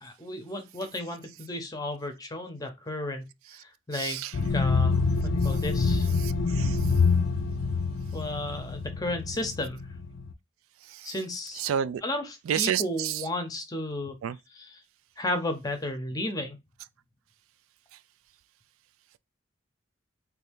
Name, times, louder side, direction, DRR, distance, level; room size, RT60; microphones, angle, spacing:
voice 1, 0.0-3.3 3.9-4.2 4.5-6.1 8.1-9.8 11.0-11.6 12.0-14.2 14.5-14.8 15.2-16.6, left 1 dB, 15° left, 0.7 m, -33 dB
voice 2, 3.9-4.3 6.2-6.8 11.6-12.0 12.5-13.1 14.2-14.4, right 9 dB, 80° right, 0.3 m, -29 dB
sound 1, 4.3-10.3, left 4 dB, 65° left, 0.4 m, -26 dB
3.2 x 2.7 x 3.5 m
head